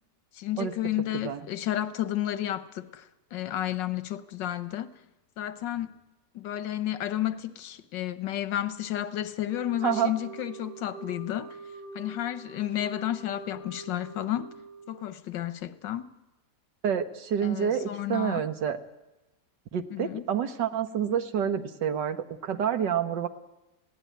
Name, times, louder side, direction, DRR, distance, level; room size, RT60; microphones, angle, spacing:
voice 1, 0.3-4.9 5.4-5.9 6.3-11.6 11.9-14.5 14.9-16.1 17.4-18.4 19.9-20.2, left 12 dB, 85° left, 1.6 m, -32 dB
Wind instrument woodwind instrument, 9.5-15.1, right 3 dB, 15° right, 7.6 m, -45 dB
voice 2, 9.8-10.1 16.8-18.8 19.7-23.3, right 8 dB, 80° right, 1.9 m, -28 dB
20.5 x 17.0 x 9.4 m
omnidirectional pair, 1.9 m